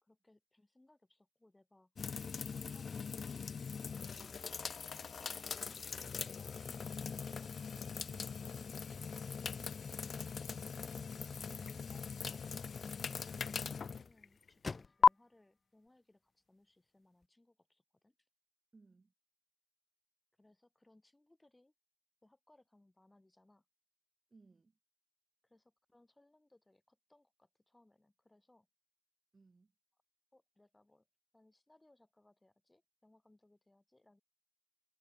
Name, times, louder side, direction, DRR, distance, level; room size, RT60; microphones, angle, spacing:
voice 1, 0.0-1.9 2.5-4.6 5.3-6.1 6.3-7.5 10.9-18.2 20.4-21.7 22.2-23.7 25.4-28.7 30.3-31.1 31.3-34.2, left 1 dB, 25° left, 7.1 m, -68 dB
sound 1, 2.0-15.1, left 6 dB, 75° left, 0.4 m, -38 dB
voice 2, 8.1-8.6 11.0-11.3 18.7-19.1 24.3-24.8 29.3-29.7, right 3 dB, 50° right, 4.2 m, -63 dB
sound 2, 11.1-17.3, left 3 dB, 50° left, 4.0 m, -54 dB
cardioid pair, 45°, 0 cm